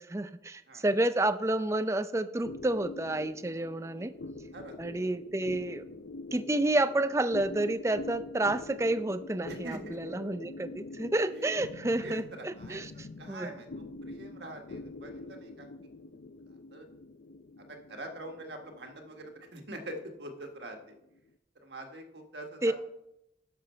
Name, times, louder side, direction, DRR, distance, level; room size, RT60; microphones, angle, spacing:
voice 1, 0.0-4.1 4.8-5.8 6.3-12.9 13.3-13.5 22.6-22.7, right 1 dB, 15° right, 12 dB, 0.4 m, -30 dB
sound 1, 2.4-21.2, left 2 dB, 70° left, 0.5 m, -45 dB
voice 2, 9.5-10.0 11.3-11.6 12.0-15.7 16.7-16.9 17.6-20.9 21.6-22.7, right 1 dB, 85° right, 3 dB, 1.6 m, -44 dB
11.0 x 6.9 x 4.5 m, 0.82 s
head